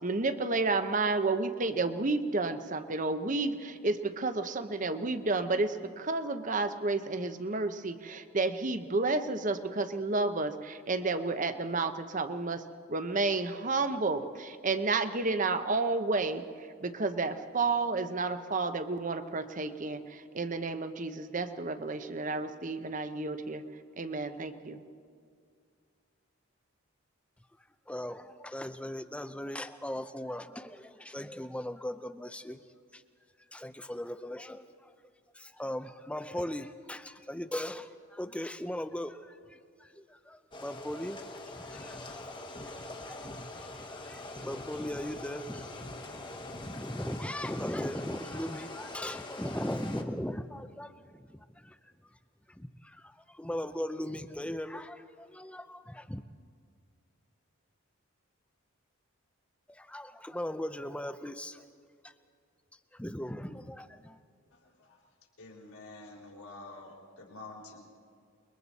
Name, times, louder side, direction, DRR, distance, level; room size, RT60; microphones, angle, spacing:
voice 1, 0.0-12.6 12.9-23.6 24.0-24.8, right 3 dB, 35° right, 10 dB, 0.8 m, -31 dB
voice 2, 27.9-32.6 32.9-33.0 33.5-34.9 35.3-45.9 46.3-51.8 52.5-56.2 59.7-61.6 62.0-62.1 62.9-64.2, left 1 dB, 5° left, 10 dB, 0.5 m, -39 dB
sound 1, 40.5-50.0, left 2 dB, 20° left, 1.2 m, -43 dB
voice 3, 64.5-65.0 65.4-68.0, left 2 dB, 85° left, -1 dB, 3.9 m, -48 dB
29.0 x 22.0 x 4.2 m, 2.2 s
head